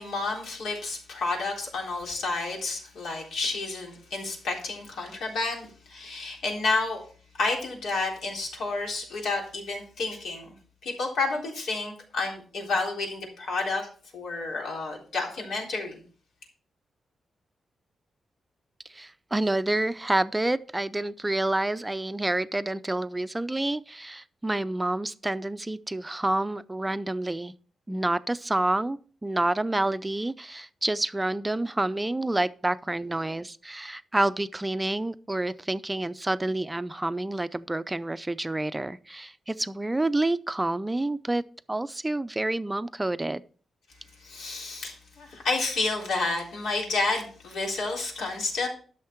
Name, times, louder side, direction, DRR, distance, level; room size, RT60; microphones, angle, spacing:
voice 1, 0.0-7.0 7.4-10.5 10.8-13.9 14.1-16.0 44.2-48.7, left 3 dB, 90° left, 3.8 m, -30 dB
voice 2, 18.9-27.5 27.9-41.4 41.7-43.4, right 2 dB, 15° right, 0.5 m, -28 dB
12.0 x 6.5 x 4.5 m
wide cardioid pair, 135°, 0 cm